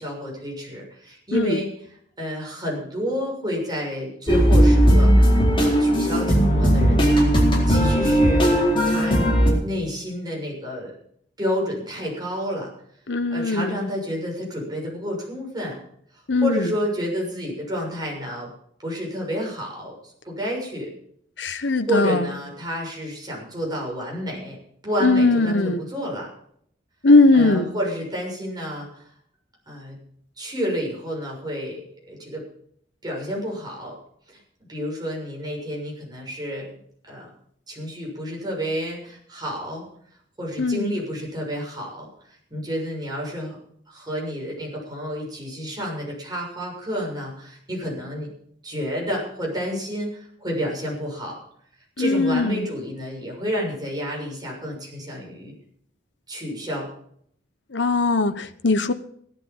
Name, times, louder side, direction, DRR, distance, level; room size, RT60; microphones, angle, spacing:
voice 1, 0.0-1.7 2.2-8.6 8.8-10.9 11.4-12.7 13.3-15.8 16.4-18.5 18.8-20.9 21.5-24.6 24.8-26.3 27.3-29.0 29.7-30.0 30.4-32.5 33.0-34.0 34.3-34.4 34.7-36.7 37.1-37.3 37.7-39.9 40.4-42.1 42.5-43.6 43.9-48.3 48.6-51.4 52.0-55.5 56.3-56.9, equal, 25° right, -1 dB, 6.7 m, -30 dB
sound 1, 4.3-9.5, equal, 30° left, 4.2 m, -17 dB
voice 2, 13.1-13.8 16.3-16.7 21.4-22.3 25.0-25.8 27.0-27.7 40.6-40.9 52.0-52.7 57.7-58.9, left 3 dB, 75° left, 10 dB, 1.0 m, -19 dB
16.5 x 12.0 x 5.6 m, 0.66 s
head